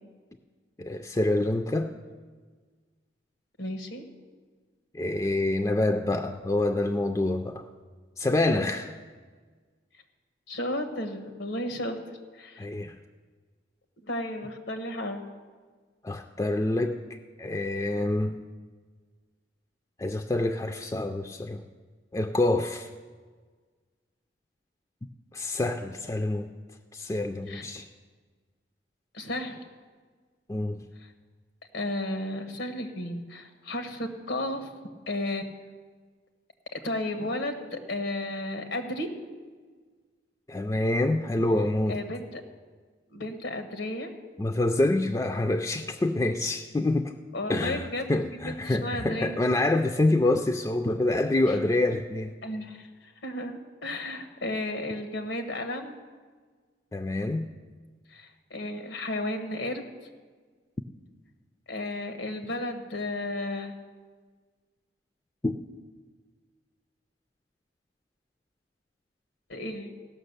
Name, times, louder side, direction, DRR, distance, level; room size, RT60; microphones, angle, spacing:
voice 1, 0.8-1.9 4.9-7.7 8.2-8.9 12.6-13.0 16.0-17.0 17.4-18.4 20.0-21.6 22.1-22.9 25.3-26.5 26.9-27.9 30.5-30.8 40.5-42.0 44.4-47.1 47.5-52.3 56.9-57.5 65.4-65.6, left 2 dB, 20° left, 6 dB, 0.3 m, -26 dB
voice 2, 3.6-4.0 10.5-12.0 12.3-12.7 14.0-15.2 27.5-27.6 29.1-29.6 31.0-31.1 31.7-34.7 35.1-35.4 36.7-39.1 41.9-42.4 43.1-44.1 47.3-49.4 51.5-51.6 52.4-56.0 58.1-59.9 61.7-63.7 69.5-69.9, left 1 dB, 90° left, 6 dB, 1.2 m, -33 dB
16.0 x 6.2 x 6.6 m, 1.5 s
head